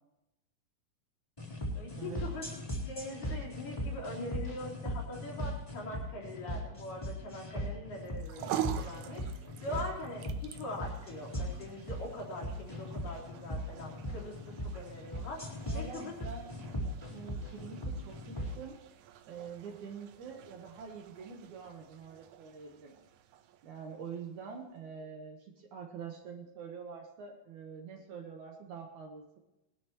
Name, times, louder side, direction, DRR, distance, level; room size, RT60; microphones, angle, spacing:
sound 1, 1.4-18.5, equal, 10° left, 3.0 m, -39 dB
voice 1, 1.7-2.5 2.8-16.2, left 1 dB, 60° left, -3 dB, 4.9 m, -42 dB
sound 2, 8.0-24.5, right 12 dB, 85° right, 1.7 m, -46 dB
voice 2, 15.7-16.6 17.1-18.8 19.3-23.0 23.6-29.4, right 6 dB, 65° right, 2 dB, 2.2 m, -45 dB
21.0 x 13.0 x 3.0 m, 0.93 s
omnidirectional pair, 4.3 m